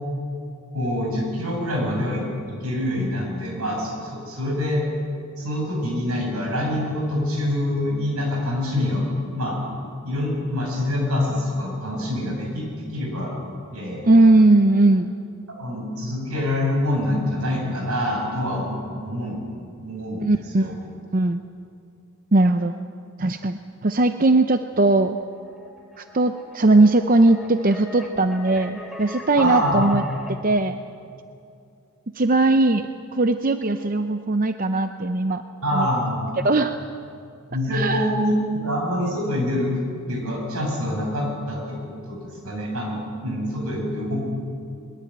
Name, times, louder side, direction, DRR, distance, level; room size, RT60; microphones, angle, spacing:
voice 1, 0.7-4.8 5.4-9.0 9.4-9.6 10.0-13.3 13.7-14.1 15.6-19.5 19.8-20.7 29.4-29.9 35.6-36.4 37.5-39.7 40.1-44.3, left 1 dB, 80° right, 0 dB, 7.3 m, -25 dB
voice 2, 14.0-15.1 20.2-20.7 21.1-21.4 22.3-22.8 23.2-25.2 26.0-30.0 30.4-30.8 32.1-35.4 35.7-35.9 36.4-36.8 37.7-38.1, right 2 dB, 40° right, 8 dB, 0.6 m, -19 dB
sound 1, 24.7-30.3, left 1 dB, ahead, 2.7 m, -41 dB
21.5 x 21.5 x 8.8 m, 2.5 s
head